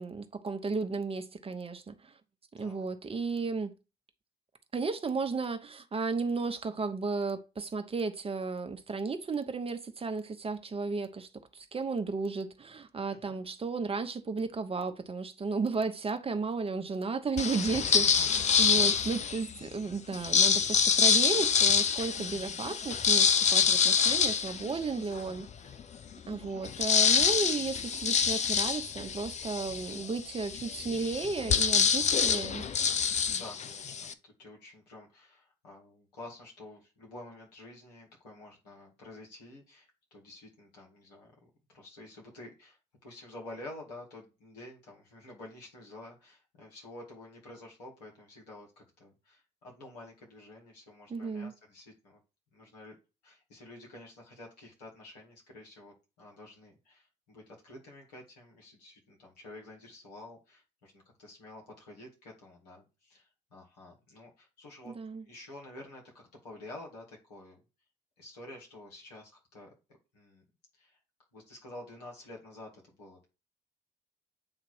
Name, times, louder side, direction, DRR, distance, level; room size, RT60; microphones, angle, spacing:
voice 1, 0.0-2.1 2.5-3.7 4.7-25.5 26.3-32.6 51.1-51.5 64.8-65.2, right 4 dB, 30° right, 1.0 m, -34 dB
voice 2, 2.6-2.9 13.3-13.4 18.2-19.0 24.7-24.9 25.4-25.8 33.3-52.2 52.5-52.9 53.2-64.9 65.3-67.6 68.2-69.7 70.1-70.4 70.8-71.0 71.3-73.2, left 2 dB, 80° left, 2.2 m, -50 dB
sound 1, 17.4-19.5 20.1-25.3 25.8-25.9 26.1-34.1, left 6 dB, 35° left, 0.6 m, -26 dB
8.7 x 2.9 x 4.5 m
figure-of-eight pair, 50°, 21 cm